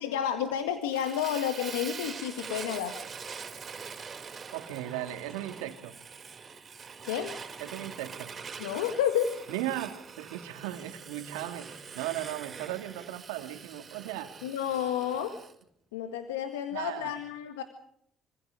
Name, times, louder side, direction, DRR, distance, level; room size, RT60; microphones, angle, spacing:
voice 1, 0.0-3.0 7.0-7.4 8.6-9.4 14.4-15.4 15.9-17.6, left 9 dB, 90° left, 8 dB, 1.7 m, -31 dB
Fire, 0.9-15.5, right 6 dB, 40° right, 5.3 m, -44 dB
voice 2, 4.5-5.9 7.6-8.3 9.5-14.4 16.7-17.1, right 14 dB, 85° right, 6 dB, 2.6 m, -37 dB
26.5 x 26.0 x 5.1 m, 0.72 s
hypercardioid pair, 60°, 0 cm